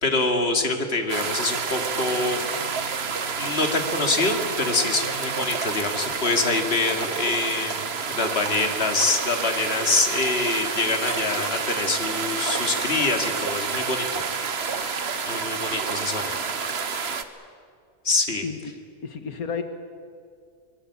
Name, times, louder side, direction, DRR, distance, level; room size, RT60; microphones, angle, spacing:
voice 1, 0.0-2.4 3.4-14.2 14.7-15.0 15.3-16.3 16.9-17.0 18.0-18.4, left 3 dB, 45° left, 4 dB, 2.5 m, -25 dB
sound 1, 1.1-17.2, right 5 dB, 50° right, 1.4 m, -29 dB
sound 2, 7.2-7.3 8.4-8.5 9.6-9.7 10.6-16.6, right 2 dB, 30° right, 2.1 m, -45 dB
voice 2, 18.4-18.7 19.0-19.6, left 5 dB, 85° left, 7 dB, 1.9 m, -32 dB
23.5 x 22.0 x 8.6 m, 2.2 s
omnidirectional pair, 1.5 m